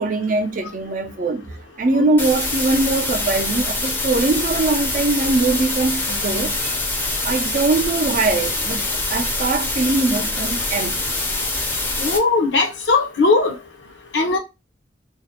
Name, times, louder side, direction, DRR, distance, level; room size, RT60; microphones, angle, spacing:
voice 1, 0.0-1.4 1.8-6.8 7.2-11.0, right 3 dB, 50° right, 0.4 m, -21 dB
sound 1, 2.2-12.2, left 2 dB, 10° left, 0.5 m, -24 dB
voice 2, 12.0-13.5 14.1-14.4, left 3 dB, 85° left, 0.6 m, -18 dB
2.4 x 2.0 x 2.8 m
head